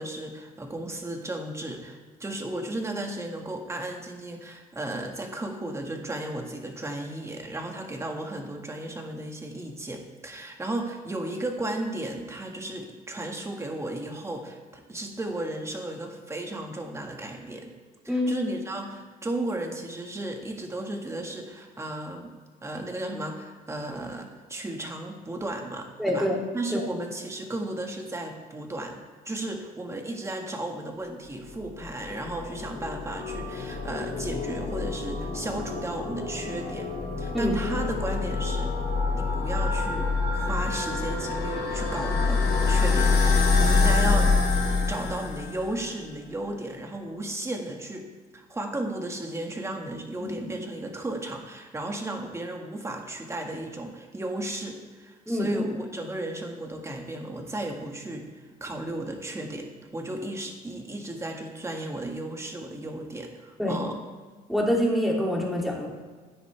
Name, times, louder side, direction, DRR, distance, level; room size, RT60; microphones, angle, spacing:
voice 1, 0.0-17.7 18.0-22.3 22.6-26.3 26.5-36.9 37.2-38.7 39.1-44.3 44.6-48.0 48.3-58.3 58.6-64.0, right 1 dB, 15° right, 2 dB, 1.6 m, -34 dB
voice 2, 26.0-26.4 26.7-26.8 37.3-37.6 50.3-50.5 55.3-55.6 63.6-63.8 64.5-65.9, equal, ahead, -3 dB, 2.6 m, -26 dB
sound 1, 31.6-45.8, left 4 dB, 70° left, 2.6 m, -26 dB
13.0 x 9.6 x 3.3 m, 1.4 s
cardioid pair, 110°, 17 cm